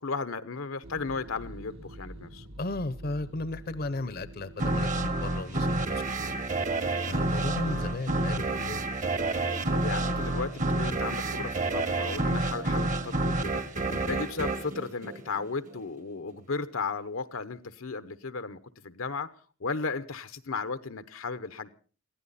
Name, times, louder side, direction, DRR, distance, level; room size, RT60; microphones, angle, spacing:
voice 1, 0.0-2.5 9.7-13.6 14.0-18.6 18.8-19.3 19.6-21.7, left 4 dB, 85° left, 1.0 m, -35 dB
sound 1, 0.8-6.4, right 1 dB, 80° right, 2.1 m, -47 dB
voice 2, 2.6-6.3 7.1-8.8 13.9-14.1, left 2 dB, 50° left, 0.7 m, -35 dB
sound 2, 4.6-15.8, right 2 dB, 40° right, 1.0 m, -29 dB
23.0 x 15.5 x 4.1 m
head